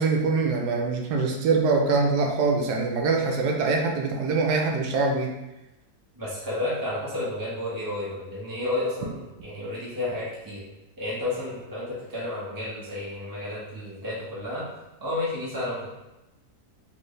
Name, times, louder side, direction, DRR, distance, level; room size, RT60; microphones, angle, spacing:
voice 1, 0.0-5.3, right 4 dB, 85° right, 1 dB, 1.2 m, -24 dB
voice 2, 6.1-10.6 11.0-14.7 15.0-16.0, left 2 dB, 15° right, -8 dB, 0.9 m, -31 dB
4.4 x 3.2 x 3.2 m, 0.98 s
omnidirectional pair, 1.7 m